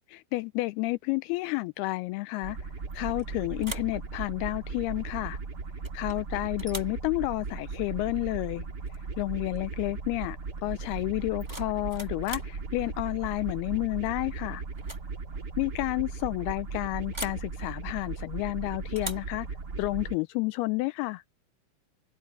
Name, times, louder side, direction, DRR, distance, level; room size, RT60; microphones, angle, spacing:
voice 1, 0.1-2.6 2.9-5.4 5.9-8.6 9.2-14.6 15.6-19.5 19.8-21.2, left 21 dB, 85° left, 2.5 m, -30 dB
sound 1, 2.4-20.1, right 4 dB, 35° right, 1.9 m, -37 dB
sound 2, 2.9-3.2 3.6-4.0 5.8-6.2 6.6-7.0 8.9-9.0 9.4-9.7 11.2-12.6 14.0-14.3 14.7-15.1 15.3-15.4 17.1-17.5 18.9-19.3, right 1 dB, 15° right, 1.2 m, -41 dB
open air
omnidirectional pair, 4.5 m